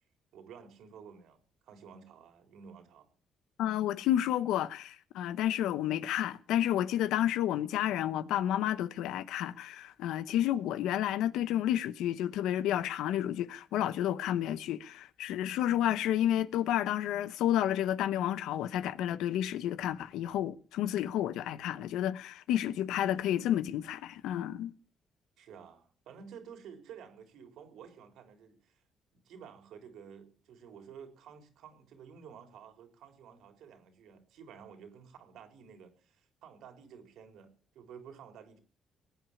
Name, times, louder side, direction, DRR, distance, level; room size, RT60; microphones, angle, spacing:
voice 1, 0.3-3.1 25.4-28.8 29.1-38.6, right 7 dB, 80° right, 3.7 m, -52 dB
voice 2, 3.6-24.7, left 11 dB, 90° left, 0.9 m, -31 dB
19.5 x 9.2 x 7.1 m
cardioid pair, 90°, 0 cm